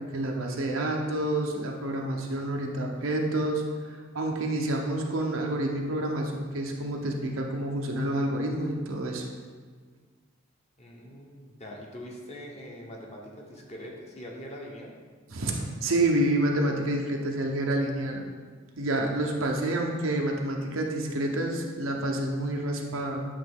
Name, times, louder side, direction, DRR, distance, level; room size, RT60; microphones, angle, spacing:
voice 1, 0.0-9.3 15.3-18.3 18.8-23.2, right 1 dB, 85° right, 1 dB, 0.8 m, -28 dB
voice 2, 10.8-14.9, equal, 35° left, -1 dB, 0.9 m, -43 dB
8.2 x 3.2 x 3.6 m, 1.5 s
head